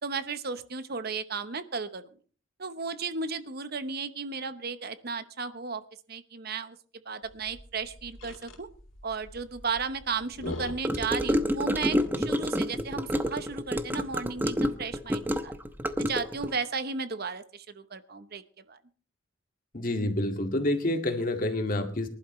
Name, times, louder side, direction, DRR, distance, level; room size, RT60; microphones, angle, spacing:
voice 1, 0.0-2.0 2.6-5.8 6.1-6.8 7.1-8.7 9.0-15.5 16.0-18.4 18.7-18.8, right 5 dB, 55° right, 12 dB, 0.9 m, -34 dB
sound 1, 7.2-12.3, left 1 dB, 85° left, 3.1 m, -43 dB
Gurgling / Car passing by / Sink (filling or washing), 10.8-16.5, equal, 10° right, 0.9 m, -28 dB
voice 2, 19.7-22.1, left 1 dB, 45° left, 5 dB, 2.0 m, -28 dB
24.0 x 11.5 x 3.2 m, 0.41 s
head